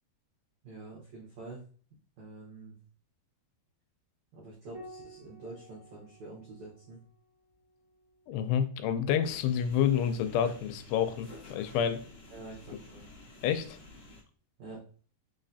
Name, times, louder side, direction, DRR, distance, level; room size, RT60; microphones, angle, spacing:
voice 1, 0.6-1.6 2.2-2.8 4.3-7.0 12.3-13.1 14.6-14.8, right 3 dB, 85° right, -5 dB, 1.6 m, -47 dB
Piano, 4.7-9.6 11.2-12.0, right 1 dB, 45° right, 0.9 m, -54 dB
voice 2, 8.3-12.0 13.4-13.8, left 8 dB, 85° left, 9 dB, 2.6 m, -29 dB
sound 1, 9.2-14.2, left 2 dB, 50° left, 2.2 m, -51 dB
6.0 x 3.2 x 2.6 m, 0.43 s
omnidirectional pair, 4.8 m